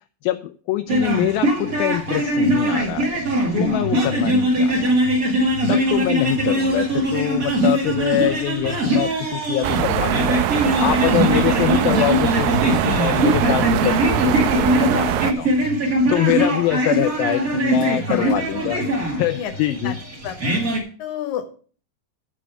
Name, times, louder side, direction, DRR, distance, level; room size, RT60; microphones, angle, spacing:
voice 1, 0.2-3.2 3.5-5.0 5.7-10.4 10.8-15.5 15.8-20.0, left 15 dB, 80° left, 8 dB, 2.3 m, -24 dB
sound 1, 0.9-20.8, right 1 dB, 30° right, 1.6 m, -21 dB
voice 2, 3.9-4.2 5.6-6.1 11.2-11.5 18.1-18.3 19.2-19.9 20.2-21.6, left 7 dB, 60° left, 6 dB, 2.4 m, -32 dB
sound 2, 9.6-15.3, right 11 dB, 80° right, 2.2 m, -22 dB
12.0 x 4.8 x 6.8 m, 0.42 s
omnidirectional pair, 4.4 m